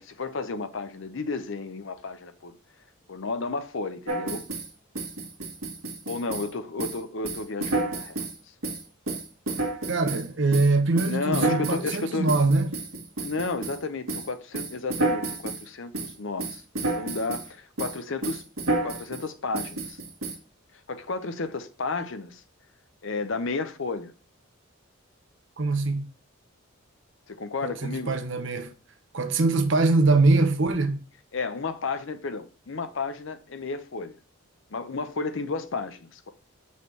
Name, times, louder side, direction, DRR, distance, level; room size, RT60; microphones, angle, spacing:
voice 1, 0.0-2.5 3.1-4.4 6.1-8.2 11.1-12.3 13.2-16.6 17.0-18.4 18.8-20.0 20.9-22.4 23.0-24.1 27.3-28.1 31.3-34.1 34.7-36.3, left 3 dB, 60° left, 0.6 m, -32 dB
sound 1, 4.1-4.7 4.9-6.5 6.8-7.0 7.2-8.4 8.6-10.3 10.5-13.8 14.1-14.3 14.5-15.6 15.9-16.1 16.4-17.5 17.8-18.0 18.2-19.2 19.5-20.3, right 2 dB, 80° right, 1.6 m, -30 dB
voice 2, 9.9-12.7 25.6-26.1 27.6-28.7 29.1-31.0, right 3 dB, 55° right, 0.8 m, -23 dB
6.0 x 5.5 x 3.2 m
head